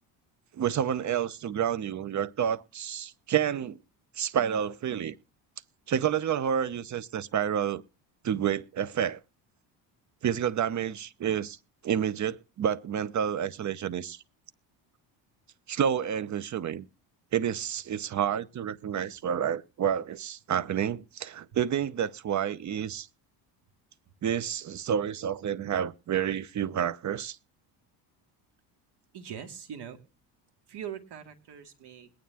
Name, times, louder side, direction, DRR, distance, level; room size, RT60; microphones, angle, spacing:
voice 1, 0.5-3.8 4.2-5.1 5.9-7.8 8.2-9.2 10.2-11.6 11.8-14.2 15.7-16.9 17.3-23.1 24.2-27.4, right 9 dB, 40° right, 0.8 m, -29 dB
voice 2, 29.1-30.0 30.7-32.1, right 8 dB, 60° right, 2.3 m, -41 dB
22.0 x 9.2 x 2.8 m
supercardioid pair, 80°, 46 cm